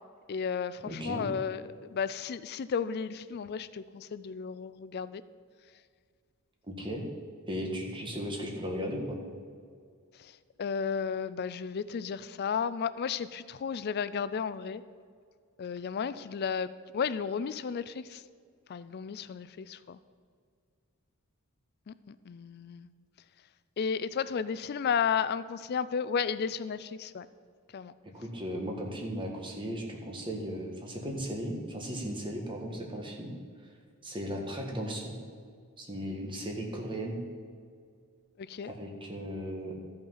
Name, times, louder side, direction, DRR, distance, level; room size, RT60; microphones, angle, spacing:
voice 1, 0.3-1.6 1.9-5.2 10.2-10.3 10.6-14.8 15.6-16.7 16.9-18.2 18.7-20.0 21.9-22.9 23.8-27.3 27.7-27.9 38.4-38.7, left 6 dB, 45° left, 15 dB, 0.3 m, -33 dB
voice 2, 0.8-1.3 6.7-7.0 7.5-9.2 28.1-33.3 33.6-33.7 34.0-35.2 35.8-37.2 38.6-39.7, equal, 25° right, 0 dB, 1.4 m, -36 dB
13.0 x 5.5 x 5.6 m, 2.1 s
head